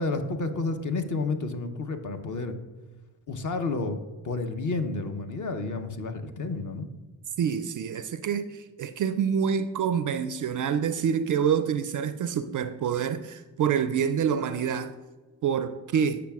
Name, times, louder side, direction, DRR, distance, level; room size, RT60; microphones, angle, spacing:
voice 1, 0.0-2.6 3.3-6.9, left 3 dB, 40° left, 7 dB, 0.7 m, -30 dB
voice 2, 7.4-14.9 15.4-16.2, right 7 dB, 40° right, 11 dB, 0.4 m, -27 dB
8.3 x 5.8 x 2.3 m, 1.2 s
hypercardioid pair, 40°, 50 cm